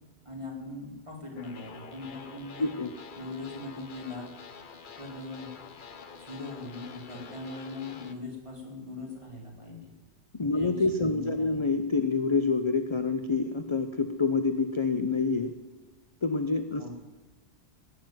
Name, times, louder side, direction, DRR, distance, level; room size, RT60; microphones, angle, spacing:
voice 1, 0.2-2.7 3.2-4.3 5.0-5.5 6.2-9.9 10.5-10.7 11.1-11.6 16.8-16.9, left 2 dB, 25° right, -2 dB, 3.8 m, -40 dB
sound 1, 1.4-8.2, left 5 dB, 45° left, 1.1 m, -47 dB
voice 2, 2.6-2.9 10.3-15.5 16.2-16.9, left 4 dB, 30° left, 7 dB, 0.8 m, -27 dB
17.0 x 6.9 x 9.5 m, 1.2 s
omnidirectional pair, 1.2 m